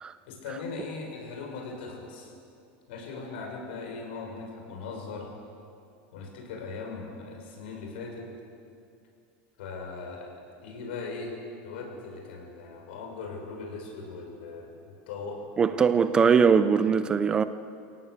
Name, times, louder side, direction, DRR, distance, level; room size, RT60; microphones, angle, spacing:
voice 1, 0.3-2.3 2.9-5.3 6.1-8.3 9.6-11.3 11.6-15.4 16.2-16.3, left 4 dB, 75° left, 6.7 m, -39 dB
voice 2, 15.6-17.4, right 6 dB, 15° right, 0.4 m, -21 dB
25.5 x 17.5 x 8.2 m
supercardioid pair, 175°, 6 cm